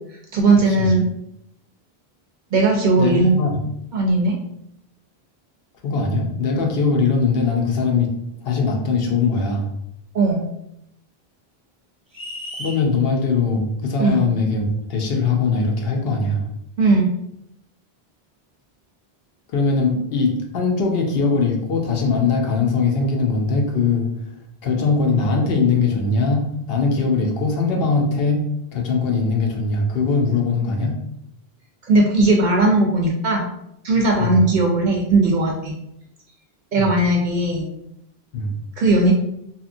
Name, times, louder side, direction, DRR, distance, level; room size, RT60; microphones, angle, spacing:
voice 1, 0.3-1.1 2.5-3.3 3.9-4.4 10.1-10.4 14.0-14.2 16.8-17.1 31.9-33.5 33.8-35.7 36.7-37.7 38.8-39.1, right 2 dB, 60° right, 0 dB, 0.6 m, -17 dB
voice 2, 3.0-3.5 5.8-8.1 8.4-9.7 12.6-16.5 19.5-24.1 24.6-28.4 28.7-30.9 34.2-34.4 36.8-36.9 38.3-38.5, left 4 dB, 70° left, 1 dB, 0.8 m, -21 dB
sound 1, 12.1-12.8, equal, 10° right, 0.5 m, -33 dB
2.8 x 2.4 x 2.5 m, 0.78 s
omnidirectional pair, 1.0 m